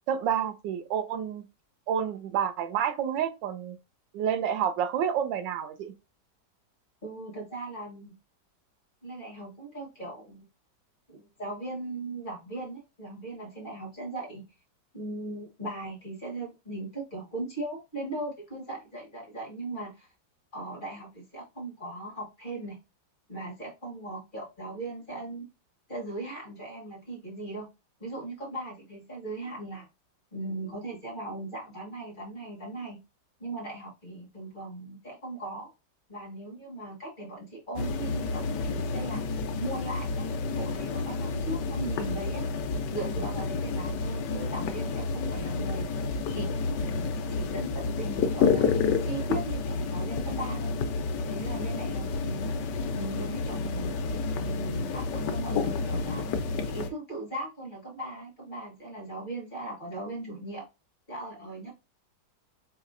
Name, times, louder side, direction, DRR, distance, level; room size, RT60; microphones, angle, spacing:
voice 1, 0.1-1.4 1.9-3.8 4.1-5.9, right 8 dB, 90° right, 1.4 m, -29 dB
voice 2, 7.0-8.1 9.0-10.4 11.1-14.4 14.9-20.1 20.5-22.8 23.3-25.5 25.9-27.7 28.0-29.8 30.3-33.0 33.4-35.7 36.1-39.2 39.6-42.4 42.9-45.8 46.3-46.5 46.8-48.7 49.0-50.7 51.1-52.5 52.9-53.9 54.3-56.2 56.6-60.6 61.1-61.7, right 2 dB, 30° left, 1.5 m, -38 dB
sound 1, 37.8-56.9, left 4 dB, 75° left, 1.2 m, -30 dB
4.6 x 2.9 x 2.5 m
omnidirectional pair, 1.9 m